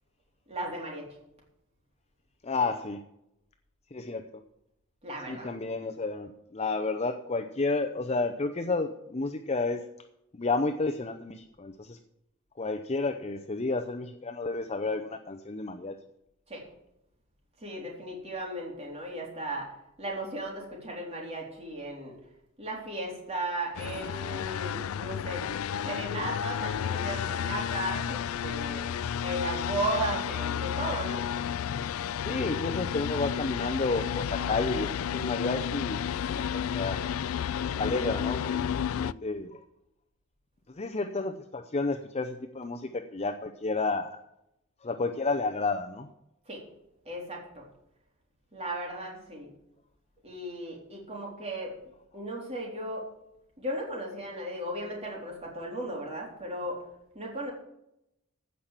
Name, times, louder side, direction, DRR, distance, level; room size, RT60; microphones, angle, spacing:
voice 1, 0.5-1.1 5.0-5.5 16.5-16.6 17.6-19.7 20.0-22.1 22.6-25.4 25.8-28.9 29.2-31.2 46.5-46.6 47.1-47.7 48.5-49.5 50.2-51.7 52.1-53.1 53.6-56.8 57.1-57.5, right 1 dB, 30° right, -1 dB, 3.8 m, -35 dB
voice 2, 2.4-3.0 3.9-4.2 5.3-9.8 10.3-12.0 12.6-16.0 32.2-36.0 36.3-37.0 37.6-38.7 39.0-39.6 40.7-44.2 44.8-46.1, left 3 dB, 30° left, 6 dB, 0.6 m, -31 dB
sound 1, 23.7-39.1, left 8 dB, 75° left, 0.3 m, -32 dB
15.5 x 5.8 x 7.5 m, 0.83 s
head